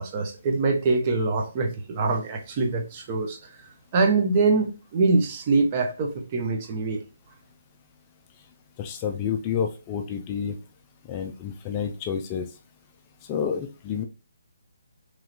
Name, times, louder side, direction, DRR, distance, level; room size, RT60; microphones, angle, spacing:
voice 1, 0.0-3.4 3.9-7.0, right 3 dB, 30° right, 0.6 m, -24 dB
voice 2, 8.8-10.6 11.1-12.5 13.3-14.0, left 7 dB, 25° left, 0.3 m, -29 dB
3.0 x 2.8 x 2.4 m
figure-of-eight pair, 145°, 0 cm